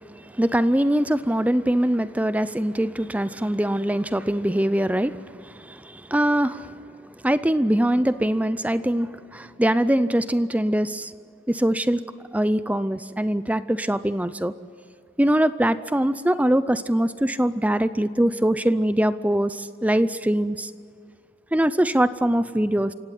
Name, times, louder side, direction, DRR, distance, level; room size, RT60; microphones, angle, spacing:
voice 1, 0.1-6.7 7.2-11.1 11.5-12.0 12.3-14.5 15.2-20.7 21.5-22.9, right 1 dB, 5° right, 14 dB, 0.5 m, -22 dB
28.5 x 17.0 x 10.0 m, 2.2 s
head